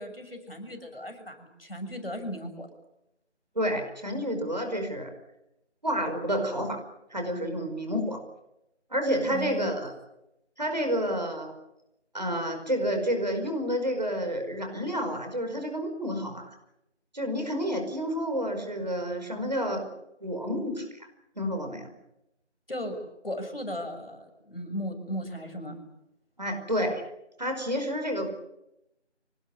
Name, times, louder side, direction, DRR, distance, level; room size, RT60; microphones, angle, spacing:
voice 1, 0.0-2.7 9.3-9.7 22.7-23.0 23.2-25.8, equal, 50° left, 6 dB, 6.5 m, -36 dB
voice 2, 3.6-5.1 5.8-6.8 7.1-8.2 8.9-9.9 10.6-11.6 12.1-16.6 17.1-19.9 20.2-20.9 21.4-21.9 26.4-27.0 27.4-28.5, equal, 35° right, 4 dB, 5.3 m, -29 dB
26.0 x 19.0 x 9.9 m, 0.87 s
figure-of-eight pair, 180°, 35 cm